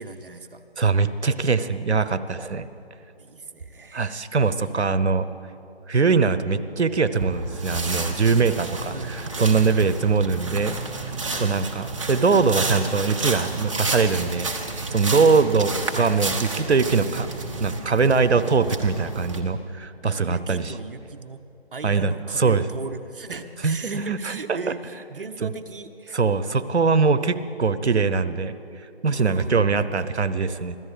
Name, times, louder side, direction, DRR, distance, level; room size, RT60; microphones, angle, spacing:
voice 1, 0.0-0.6 3.2-4.2 8.9-9.4 9.8-10.0 11.3-11.7 20.2-21.4 21.7-26.2 29.1-29.6, right 4 dB, 55° right, 8 dB, 0.9 m, -37 dB
voice 2, 0.8-2.7 3.9-5.3 5.9-10.8 11.4-17.3 17.6-20.7 21.8-22.7 23.6-24.6 25.4-25.5 26.1-28.5 29.0-30.8, right 4 dB, 85° right, 13 dB, 0.9 m, -22 dB
sound 1, 7.2-19.4, right 3 dB, 30° right, 1.1 m, -30 dB
25.0 x 16.0 x 3.4 m, 2.8 s
figure-of-eight pair, 160°, 33 cm